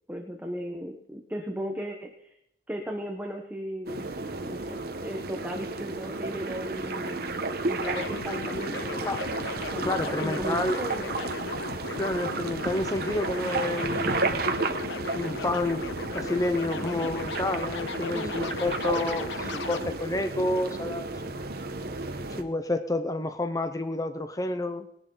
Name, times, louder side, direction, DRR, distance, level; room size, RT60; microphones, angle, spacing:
voice 1, 0.1-2.3 2.7-9.2 9.7-11.3 18.1-18.4, equal, 10° right, 3 dB, 1.0 m, -36 dB
sound 1, 3.9-22.4, right 3 dB, 55° right, 1.1 m, -33 dB
sound 2, 7.8-20.0, left 4 dB, 75° left, 0.6 m, -37 dB
voice 2, 9.8-10.8 12.0-14.4 15.1-21.4 22.3-24.9, left 2 dB, 20° left, 8 dB, 0.6 m, -30 dB
20.0 x 10.5 x 3.9 m, 0.79 s
head